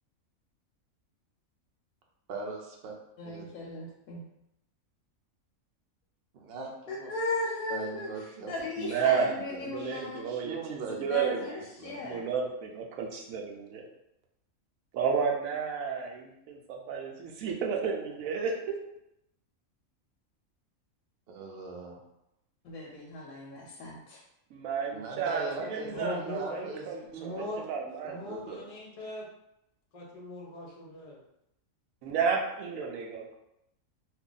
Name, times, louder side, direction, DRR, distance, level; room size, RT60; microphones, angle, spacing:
voice 1, 2.3-2.9 3.2-3.5 6.4-7.1 7.7-8.6 9.1-12.0 21.3-22.0 24.9-25.9 26.2-26.8 27.1-27.6 28.0-28.6, right 4 dB, 55° right, 0 dB, 0.8 m, -41 dB
voice 2, 3.2-4.2 6.9-8.1 8.5-10.3 11.1-12.3 22.6-24.2, left 2 dB, 90° left, -3 dB, 1.1 m, -37 dB
voice 3, 8.8-11.4 12.0-13.9 14.9-18.8 24.5-28.2 32.0-33.4, right 6 dB, 75° right, 1 dB, 1.0 m, -32 dB
voice 4, 25.9-26.6 27.2-27.7 28.1-29.3 29.9-31.2, left 1 dB, 40° left, -2 dB, 0.6 m, -39 dB
2.8 x 2.4 x 3.7 m, 0.83 s
omnidirectional pair, 1.5 m